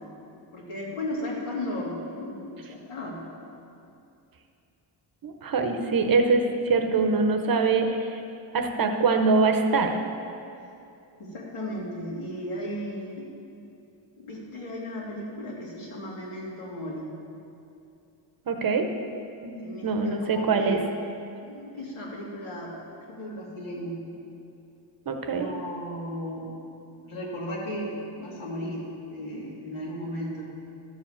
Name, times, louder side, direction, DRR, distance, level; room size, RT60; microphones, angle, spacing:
voice 1, 0.5-3.2 11.2-13.3 14.2-17.1 19.6-20.8 21.4-22.7 23.1-24.0 25.3-26.6 27.0-28.8 29.1-30.4, left 1 dB, 80° left, -5 dB, 2.7 m, -35 dB
voice 2, 5.2-8.2 8.5-10.0 18.5-18.9 19.4-20.8 25.1-25.5, right 4 dB, 45° right, 5 dB, 0.8 m, -24 dB
12.0 x 4.8 x 7.2 m, 2.6 s
wide cardioid pair, 140°, 48 cm